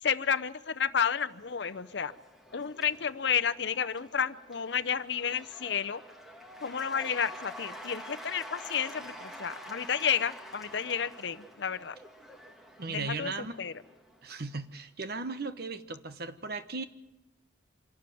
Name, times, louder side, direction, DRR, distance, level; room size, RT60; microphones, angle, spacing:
voice 1, 0.0-2.1 2.5-6.0 6.6-12.0 12.9-13.7, left 7 dB, 65° left, 11 dB, 0.7 m, -31 dB
Cheering / Applause / Crowd, 1.1-14.5, equal, ahead, 1.8 m, -48 dB
voice 2, 12.8-13.5 14.2-16.8, right 3 dB, 55° right, 11 dB, 1.1 m, -37 dB
26.0 x 12.5 x 9.2 m, 0.97 s
head